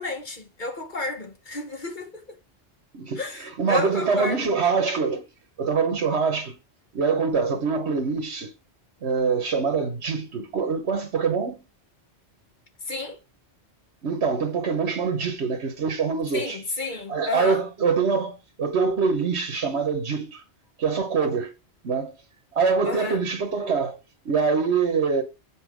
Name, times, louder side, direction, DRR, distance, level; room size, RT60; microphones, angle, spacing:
voice 1, 0.0-2.4 3.2-4.5 12.9-13.2 16.3-17.6 22.8-23.2, left 3 dB, 45° left, 1.4 m, -31 dB
voice 2, 2.9-5.2 5.6-6.6 6.9-8.5 9.0-11.6 14.0-16.6 17.1-20.4 20.8-21.5 21.8-22.1 22.5-24.0 24.2-25.2, right 5 dB, 80° right, 1.4 m, -24 dB
7.5 x 4.3 x 6.2 m
omnidirectional pair, 1.1 m